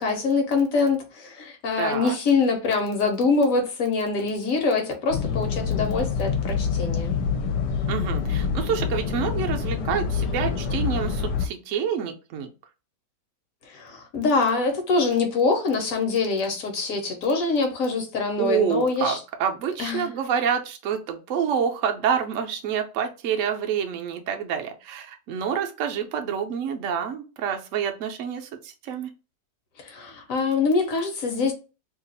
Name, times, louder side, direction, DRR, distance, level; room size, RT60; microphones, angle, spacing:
voice 1, 0.0-7.1 13.7-19.2 19.8-20.1 29.8-31.5, left 4 dB, 60° left, 1.1 m, -24 dB
voice 2, 1.8-2.2 7.9-12.5 18.4-29.1, right 7 dB, 65° right, 0.8 m, -27 dB
sound 1, 5.1-11.5, left 6 dB, 80° left, 1.2 m, -26 dB
2.9 x 2.4 x 3.9 m
omnidirectional pair, 1.9 m